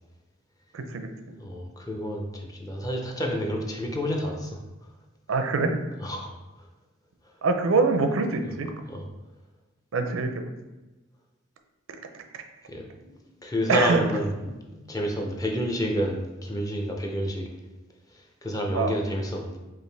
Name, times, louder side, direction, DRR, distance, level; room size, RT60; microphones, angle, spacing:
voice 1, 0.7-1.1 5.3-5.8 7.4-8.7 9.9-10.4 13.7-14.0 18.7-19.0, right 4 dB, 85° right, 6 dB, 0.5 m, -24 dB
voice 2, 1.4-4.5 6.0-6.3 8.9-9.0 12.7-12.9 13.4-17.5 18.4-19.6, equal, 20° left, 1 dB, 0.5 m, -29 dB
5.0 x 2.5 x 3.2 m, 1.1 s
head